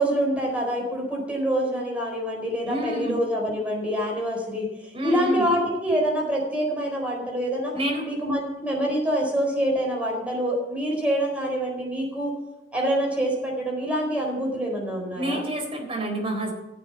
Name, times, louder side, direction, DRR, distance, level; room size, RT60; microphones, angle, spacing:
voice 1, 0.0-4.7 5.0-7.7 8.0-12.3 12.7-15.4, equal, 10° right, -1 dB, 4.2 m, -26 dB
voice 2, 2.7-3.2 4.9-5.5 7.7-8.1 15.1-16.5, right 1 dB, 30° right, 1 dB, 3.9 m, -28 dB
15.0 x 7.8 x 5.8 m, 0.96 s
head